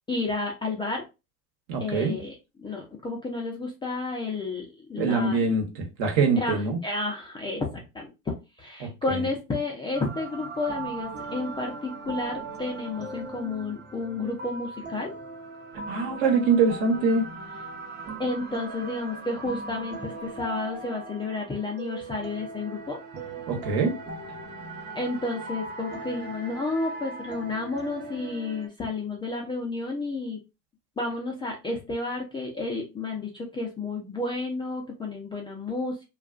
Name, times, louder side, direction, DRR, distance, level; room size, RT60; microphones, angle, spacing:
voice 1, 0.1-1.0 1.8-5.5 6.4-15.1 18.2-23.0 25.0-30.4 31.0-36.0, left 3 dB, 10° left, 0.4 m, -31 dB
voice 2, 1.7-2.1 5.0-6.8 8.8-9.3 15.9-17.2 23.5-23.9, right 4 dB, 55° right, 1.1 m, -24 dB
sound 1, 9.9-28.7, right 3 dB, 25° right, 0.7 m, -39 dB
2.3 x 2.3 x 2.4 m
hypercardioid pair, 95°, 45 cm